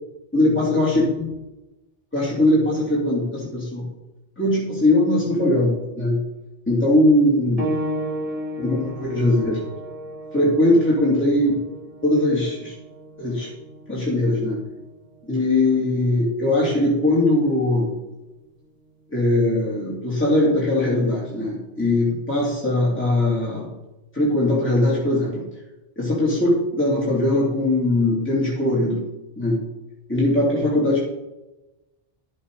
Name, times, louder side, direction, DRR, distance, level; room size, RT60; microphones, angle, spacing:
voice 1, 0.3-1.3 2.1-3.9 4.4-6.2 6.7-7.7 8.6-9.6 10.3-11.6 12.0-12.7 13.2-13.5 13.9-14.6 15.3-17.9 19.1-23.7 24.1-25.4 26.0-29.0 29.4-29.6 30.1-31.1, left 1 dB, 10° left, -7 dB, 2.9 m, -20 dB
sound 1, 7.6-17.8 18.8-18.9 19.6-19.7, right 1 dB, 35° right, 2.1 m, -34 dB
11.5 x 8.1 x 4.8 m, 1.0 s
omnidirectional pair, 1.1 m